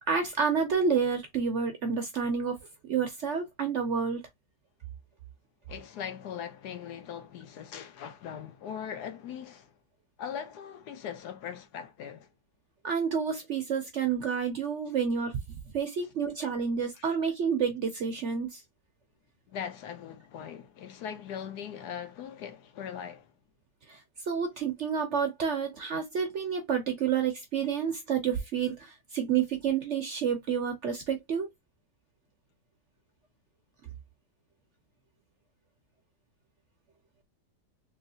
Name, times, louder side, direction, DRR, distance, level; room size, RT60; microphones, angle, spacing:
voice 1, 0.0-2.6 2.8-4.2 12.8-15.4 15.7-18.6 23.9-24.0 24.3-31.5, right 6 dB, 60° right, 0.8 m, -29 dB
voice 2, 5.7-9.8 10.2-12.3 16.9-17.0 19.5-23.3, left 8 dB, 75° left, 1.2 m, -40 dB
3.2 x 3.1 x 2.7 m
omnidirectional pair, 1.8 m